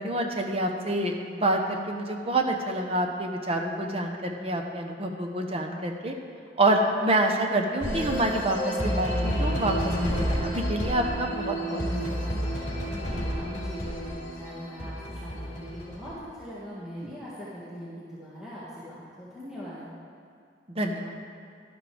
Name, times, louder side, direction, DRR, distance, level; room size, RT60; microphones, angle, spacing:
voice 1, 0.0-6.1 6.6-12.4 20.7-21.1, right 1 dB, 35° right, 3 dB, 0.9 m, -27 dB
sound 1, 7.8-16.1, equal, 45° left, 3.1 m, -30 dB
voice 2, 12.5-19.9, equal, 5° right, -11 dB, 1.8 m, -41 dB
12.0 x 11.5 x 3.5 m, 2.3 s
head